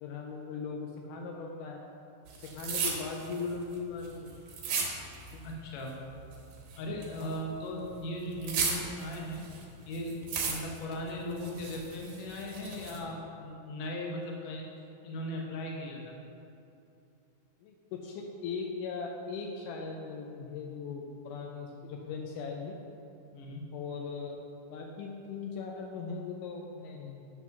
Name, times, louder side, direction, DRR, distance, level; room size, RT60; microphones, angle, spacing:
voice 1, 0.0-1.8 2.3-4.3 5.3-5.4 7.2-7.3 17.6-22.8 23.7-27.3, left 5 dB, 80° left, 1 dB, 2.1 m, -39 dB
sound 1, 2.3-5.5 5.8-7.5 7.8-9.7 9.9-10.9 11.3-13.0, right 5 dB, 75° right, 2.6 m, -35 dB
voice 2, 5.4-6.0 6.8-9.4 9.9-14.6 15.0-16.1 23.3-23.6, left 1 dB, 65° left, -1 dB, 2.1 m, -38 dB
9.0 x 4.2 x 5.8 m, 2.7 s
omnidirectional pair, 3.7 m